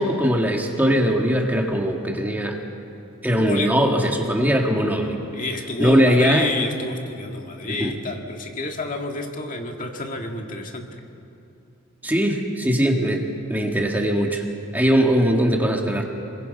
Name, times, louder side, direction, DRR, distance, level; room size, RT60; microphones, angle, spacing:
voice 1, 0.0-2.6 3.2-5.2 5.8-6.5 7.8-7.9 12.0-13.2 13.5-14.4 14.7-16.0, equal, 10° right, 1 dB, 1.7 m, -20 dB
voice 2, 3.4-4.0 5.2-11.0, left 2 dB, 40° left, 2 dB, 1.9 m, -29 dB
29.5 x 22.0 x 5.4 m, 2.7 s
head